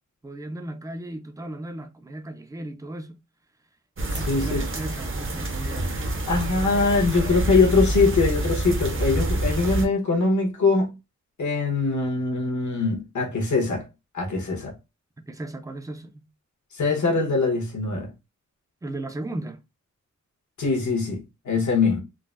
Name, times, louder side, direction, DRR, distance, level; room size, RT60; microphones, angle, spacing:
voice 1, 0.2-3.2 4.1-6.3 15.2-16.3 18.8-19.6, right 1 dB, 10° right, 0.4 m, -36 dB
sound 1, 4.0-9.9, right 1 dB, 45° right, 0.7 m, -27 dB
voice 2, 4.1-4.7 6.3-10.9 11.4-13.9 14.1-14.7 16.7-18.1 20.6-22.0, left 4 dB, 80° left, 1.2 m, -22 dB
3.8 x 2.0 x 2.4 m
wide cardioid pair, 145°, 29 cm